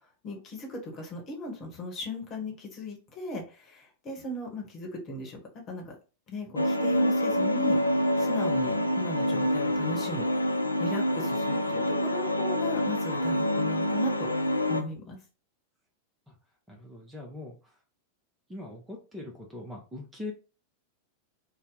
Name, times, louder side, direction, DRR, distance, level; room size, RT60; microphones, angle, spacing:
voice 1, 0.2-5.4 5.7-5.9 6.3-7.8 8.2-10.3 10.8-14.3 14.7-15.2, left 1 dB, 35° left, 1 dB, 1.1 m, -37 dB
sound 1, 6.6-14.8, left 1 dB, 80° left, 0.3 m, -27 dB
voice 2, 16.7-17.6 18.5-20.3, left 2 dB, 10° right, 0 dB, 0.7 m, -41 dB
2.7 x 2.1 x 3.8 m, 0.34 s
figure-of-eight pair, 90°, 0 cm